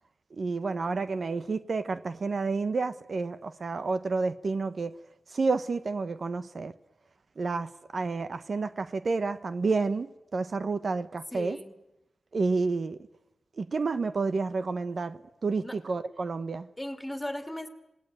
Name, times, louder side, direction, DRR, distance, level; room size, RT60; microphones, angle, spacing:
voice 1, 0.3-4.9 5.3-6.7 7.4-11.6 12.3-13.0 13.6-16.7, right 4 dB, 60° right, 1.0 m, -30 dB
voice 2, 11.3-11.8 15.6-15.8 16.8-17.7, left 1 dB, 15° left, 2.7 m, -37 dB
27.0 x 19.0 x 9.2 m
cardioid pair, 70°, 0 cm